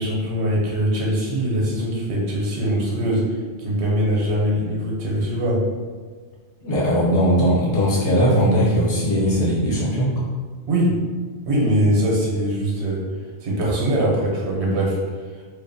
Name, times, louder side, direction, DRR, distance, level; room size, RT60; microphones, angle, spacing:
voice 1, 0.0-5.7 10.7-11.0 11.5-13.0 13.4-15.0, right 1 dB, 80° right, -3 dB, 1.0 m, -22 dB
voice 2, 6.6-10.1, equal, 65° left, -6 dB, 1.0 m, -19 dB
2.5 x 2.1 x 2.6 m, 1.5 s
omnidirectional pair, 1.1 m